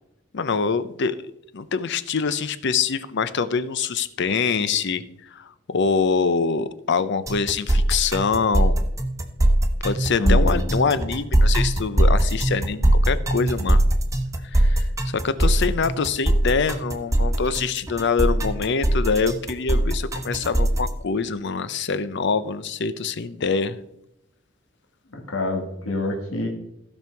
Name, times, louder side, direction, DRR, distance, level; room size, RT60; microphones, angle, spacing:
voice 1, 0.3-1.2 1.5-5.0 5.3-8.8 9.8-13.8 14.5-14.9 15.2-23.8, left 5 dB, 60° left, 14 dB, 0.6 m, -24 dB
sound 1, 7.3-20.9, right 1 dB, 15° right, 1.0 m, -20 dB
voice 2, 10.2-10.9 25.1-26.5, left 2 dB, 80° left, 1 dB, 1.8 m, -27 dB
15.0 x 5.4 x 4.6 m, 0.81 s
head